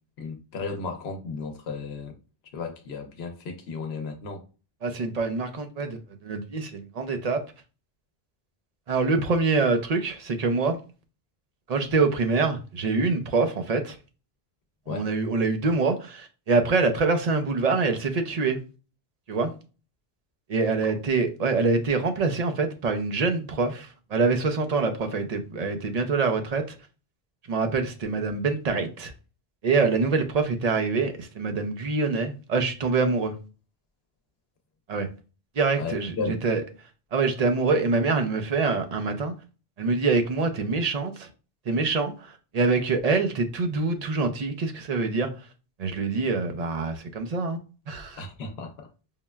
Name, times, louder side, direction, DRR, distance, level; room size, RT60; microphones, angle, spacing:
voice 1, 0.2-2.1 2.5-4.4 14.9-15.1 20.8-20.9 35.8-36.4 48.2-48.9, left 4 dB, 80° left, 0.9 m, -34 dB
voice 2, 4.8-7.4 8.9-10.8 11.7-14.0 14.9-18.6 19.3-19.5 20.5-26.8 27.5-29.1 29.6-33.3 34.9-35.1 35.6-36.1 36.4-36.6 37.1-39.3 39.8-41.3 41.7-45.3 45.8-47.6 47.9-48.2, right 4 dB, 50° right, 0.5 m, -25 dB
5.5 x 2.1 x 2.2 m
omnidirectional pair, 1.0 m